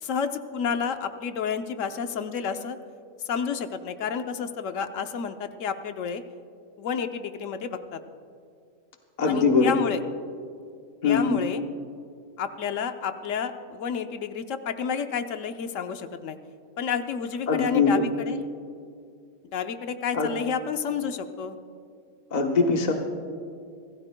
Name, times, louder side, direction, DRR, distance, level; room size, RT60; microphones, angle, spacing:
voice 1, 0.0-2.8 3.2-6.2 6.8-8.0 9.3-10.0 11.0-11.6 12.4-16.4 16.8-18.4 19.5-21.5, left 6 dB, 80° left, 8 dB, 1.1 m, -30 dB
voice 2, 9.2-9.8 11.0-11.4 17.5-18.0 20.1-20.4 22.3-22.9, left 4 dB, 35° left, 2 dB, 1.1 m, -22 dB
25.5 x 16.5 x 2.2 m, 2.4 s
omnidirectional pair, 1.3 m